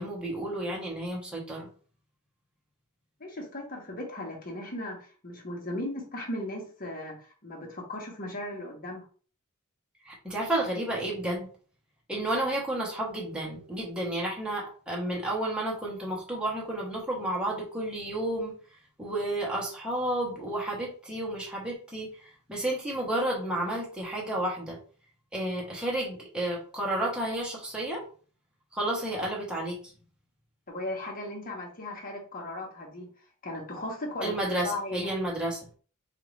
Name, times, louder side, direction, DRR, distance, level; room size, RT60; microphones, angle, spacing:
voice 1, 0.0-1.7 10.0-11.5 12.1-18.5 19.0-24.8 25.3-28.0 28.7-29.8 34.2-35.7, right 1 dB, 5° right, -3 dB, 1.1 m, -31 dB
voice 2, 3.2-9.0 30.7-33.1 33.4-35.1, left 1 dB, 40° left, 0 dB, 1.2 m, -37 dB
4.5 x 2.5 x 3.1 m, 0.41 s
head